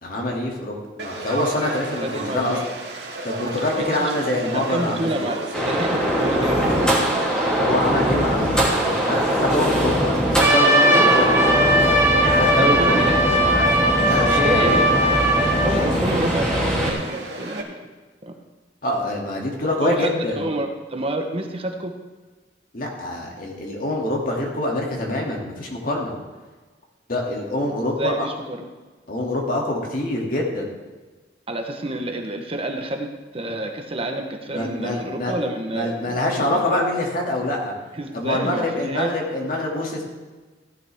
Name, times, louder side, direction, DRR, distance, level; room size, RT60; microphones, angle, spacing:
voice 1, 0.0-2.6 3.2-5.2 7.6-11.3 12.2-13.1 14.0-14.8 15.5-16.1 18.8-20.5 22.7-26.2 27.1-28.3 29.1-30.7 34.5-35.3 35.7-37.7 38.1-40.0, left 1 dB, 55° left, -1 dB, 2.6 m, -25 dB
Conversation / Crowd, 1.0-17.6, right 2 dB, 80° right, 2.0 m, -33 dB
voice 2, 2.0-2.6 3.8-4.1 4.5-7.2 10.9-11.2 12.6-13.2 14.4-14.9 15.6-17.7 18.3-18.4 19.8-21.9 27.9-28.7 31.5-33.1 33.3-36.7 37.9-39.1, right 1 dB, 35° right, 4 dB, 1.1 m, -28 dB
sound 1, 5.5-16.9, equal, 5° left, 3.0 m, -22 dB
Trumpet, 10.4-15.7, right 1 dB, 15° right, 2.1 m, -19 dB
15.5 x 11.0 x 3.6 m, 1.3 s
head